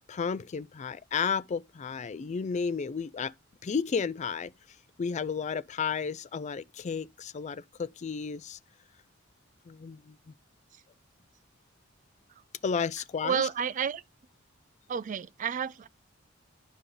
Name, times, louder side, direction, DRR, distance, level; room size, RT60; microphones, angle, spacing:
voice 1, 0.1-3.3 3.6-4.5 5.0-8.6 9.7-10.2 12.6-13.5, left 6 dB, 35° left, 0.3 m, -32 dB
voice 2, 13.2-14.0 14.9-15.9, right 7 dB, 40° right, 0.3 m, -30 dB
9.7 x 5.2 x 3.8 m
head